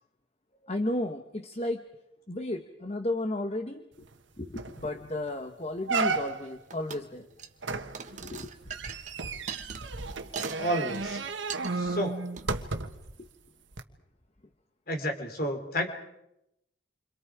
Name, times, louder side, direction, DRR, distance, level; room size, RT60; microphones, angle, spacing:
voice 1, 0.6-1.8 2.3-4.1 4.4-7.3 8.1-8.5 13.2-13.3, left 1 dB, 35° left, 6 dB, 1.2 m, -33 dB
sound 1, 4.1-4.2 4.6-4.9 5.3-5.4 5.9-6.6 7.6-13.1 13.7-13.8, right 4 dB, 80° right, 1.5 m, -33 dB
sound 2, 6.7-7.1 7.3-7.6 7.9-10.6 10.9-11.2 11.5-11.7 12.3-12.5, right 7 dB, 40° right, 1.4 m, -40 dB
voice 2, 10.6-11.2 11.7-12.2 14.9-15.9, equal, 50° left, 5 dB, 3.8 m, -31 dB
29.5 x 26.0 x 5.0 m, 0.85 s
head